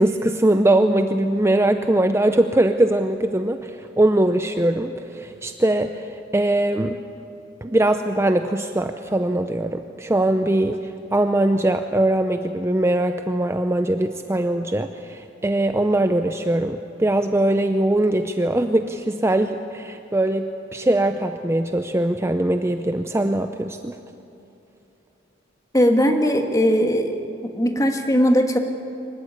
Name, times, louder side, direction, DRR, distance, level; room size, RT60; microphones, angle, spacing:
voice 1, 0.0-7.0 7.6-23.9, right 1 dB, 15° right, 7 dB, 0.6 m, -21 dB
voice 2, 25.7-27.2 27.5-28.6, equal, 15° left, 4 dB, 1.7 m, -19 dB
24.5 x 14.5 x 9.8 m, 2.8 s
head